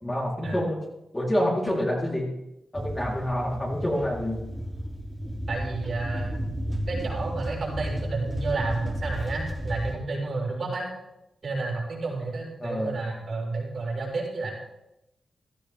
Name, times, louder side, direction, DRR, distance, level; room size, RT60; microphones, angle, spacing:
voice 1, 0.0-0.8 1.1-2.3 2.7-4.4 12.6-12.9, equal, 25° left, -4 dB, 4.1 m, -27 dB
sound 1, 2.7-9.9, equal, 15° right, 3.3 m, -33 dB
voice 2, 5.5-6.4 6.9-10.9 11.4-14.5, right 3 dB, 60° right, -2 dB, 6.2 m, -31 dB
16.0 x 13.0 x 3.7 m, 0.88 s
cardioid pair, 60°, 0 cm